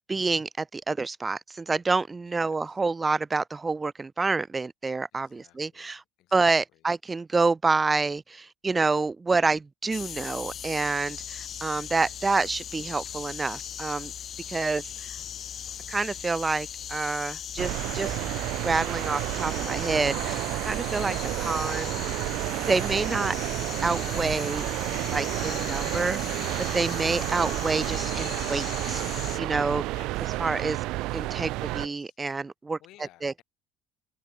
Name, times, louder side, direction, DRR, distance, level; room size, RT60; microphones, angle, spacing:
voice 1, 0.1-6.0 6.3-14.1 14.5-14.9 15.9-18.2 18.6-22.0 22.7-23.4 23.8-24.7 25.1-26.4 26.7-29.0 29.4-29.8 30.4-30.8 31.1-32.8 33.2-33.3, right 3 dB, 15° right, 0.4 m, -28 dB
voice 2, 2.2-2.8 5.1-6.8 14.8-15.7 29.8-30.5 31.5-32.2 32.8-33.4, left 16 dB, 60° left, 6.5 m, -57 dB
sound 1, 9.9-29.4, left 9 dB, 40° left, 2.0 m, -38 dB
sound 2, 17.6-31.9, right 19 dB, 70° right, 0.6 m, -30 dB
cardioid pair, 135°, 0 cm